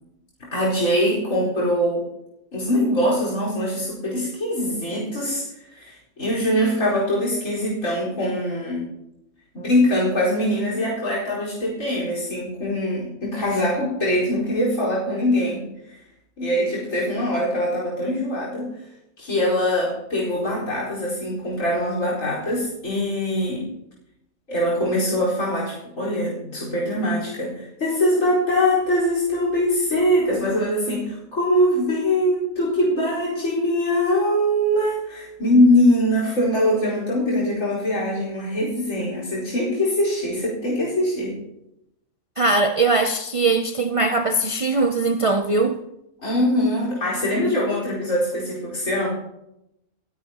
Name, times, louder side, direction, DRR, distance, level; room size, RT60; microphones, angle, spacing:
voice 1, 0.5-2.1 2.5-5.4 5.7-8.9 9.5-15.6 16.4-18.7 19.2-23.7 24.5-41.3 46.2-49.1, left 1 dB, 60° left, 5.1 m, -22 dB
voice 2, 42.4-45.8, right 3 dB, 60° right, 0.3 m, -20 dB
29.0 x 9.9 x 2.9 m
omnidirectional pair, 1.5 m